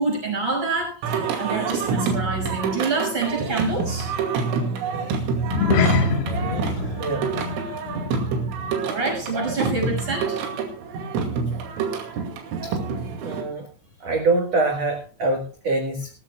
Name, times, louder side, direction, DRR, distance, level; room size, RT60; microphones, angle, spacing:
voice 1, 0.0-4.1 8.9-10.4, right 3 dB, 30° right, 1 dB, 6.7 m, -27 dB
Singing, 1.0-13.4, right 5 dB, 90° right, 4.9 m, -27 dB
sound 1, 5.4-10.0 10.3-10.6 11.1-11.2, left 4 dB, 65° left, 3.1 m, -26 dB
voice 2, 13.2-13.7 14.0-16.1, right 2 dB, 70° right, 2 dB, 1.5 m, -24 dB
23.0 x 13.5 x 2.3 m, 0.34 s
omnidirectional pair, 5.6 m